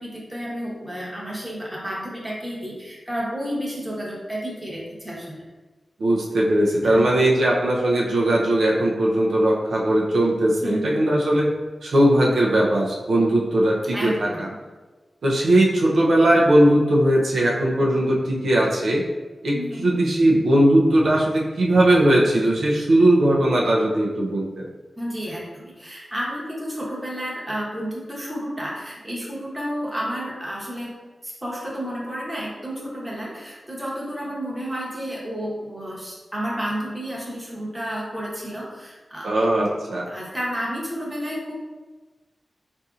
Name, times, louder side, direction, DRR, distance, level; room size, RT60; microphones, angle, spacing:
voice 1, 0.0-5.5 6.8-7.0 10.6-11.0 13.9-14.6 19.5-19.9 25.0-30.9 31.2-39.3 39.5-39.8 40.0-41.5, equal, 15° right, -5 dB, 0.9 m, -31 dB
voice 2, 6.0-11.5 11.8-14.5 15.2-19.0 19.4-24.7 39.2-40.1, right 1 dB, 85° right, -3 dB, 0.5 m, -19 dB
4.1 x 2.6 x 2.4 m, 1.3 s
wide cardioid pair, 95°, 0 cm